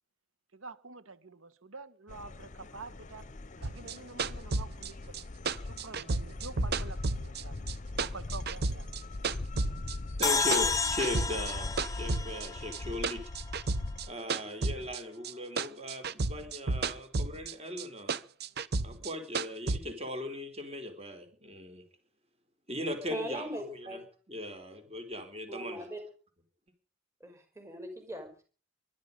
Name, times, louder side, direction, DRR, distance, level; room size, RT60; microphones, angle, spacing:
voice 1, 0.5-3.3 3.5-5.2 5.6-8.9, right 3 dB, 90° right, 1.4 m, -47 dB
sound 1, 2.1-14.1, left 2 dB, 40° left, 0.7 m, -41 dB
sound 2, 3.6-7.7 8.0-9.9 10.2-11.5 11.8-15.3 15.6-17.5 17.8-19.8, right 3 dB, 55° right, 0.8 m, -32 dB
sound 3, 10.2-13.5, left 4 dB, 15° left, 1.0 m, -31 dB
voice 2, 10.2-13.2 14.1-18.1 18.8-21.8 22.7-24.0 24.3-25.9, left 1 dB, 30° right, 3.9 m, -38 dB
voice 3, 23.1-24.0 25.5-26.0 27.2-28.4, right 1 dB, 15° right, 5.5 m, -40 dB
23.5 x 11.0 x 5.3 m
head